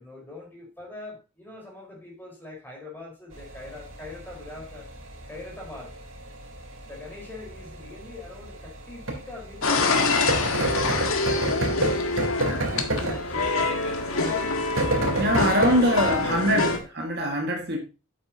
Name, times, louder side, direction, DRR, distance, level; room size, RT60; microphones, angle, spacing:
voice 1, 0.0-4.9 5.3-6.0 6.8-11.9 12.4-13.5 14.1-16.2 16.8-16.9, left 3 dB, 10° left, 4.3 m, -43 dB
sound 1, 3.3-16.8, right 2 dB, 80° right, 3.9 m, -32 dB
sound 2, 9.6-16.8, left 3 dB, 90° left, 1.7 m, -25 dB
voice 2, 15.2-17.8, equal, 50° right, 1.8 m, -23 dB
8.6 x 8.5 x 2.8 m
head